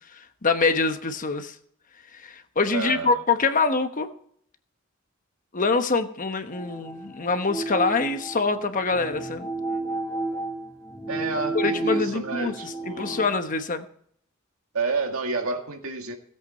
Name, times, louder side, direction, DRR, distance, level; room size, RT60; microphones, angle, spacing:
voice 1, 0.2-1.5 2.1-4.1 5.5-9.5 11.5-13.8, left 4 dB, 40° left, 8 dB, 1.0 m, -25 dB
voice 2, 2.7-3.2 11.1-13.3 14.7-16.1, right 4 dB, 85° right, 3 dB, 1.9 m, -30 dB
sound 1, 6.5-13.3, right 2 dB, 10° left, 1.1 m, -32 dB
17.5 x 8.1 x 4.3 m, 0.64 s
head